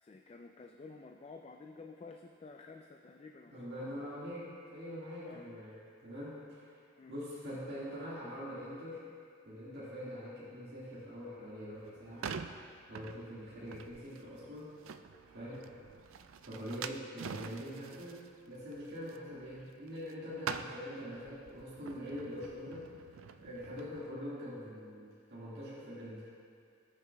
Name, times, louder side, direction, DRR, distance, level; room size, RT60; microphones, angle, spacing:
voice 1, 0.0-3.7 4.0-4.1 5.2-5.5 7.0-7.1, left 4 dB, 30° left, 3 dB, 0.3 m, -51 dB
voice 2, 3.5-6.8 7.1-9.0 9.5-12.3 12.9-14.8 15.3-15.7 16.4-22.9 23.4-26.3, equal, 55° right, -10 dB, 1.8 m, -44 dB
sound 1, 11.8-20.1 20.4-24.0, right 6 dB, 80° right, 0.4 m, -46 dB
18.5 x 6.6 x 2.3 m, 2.3 s
head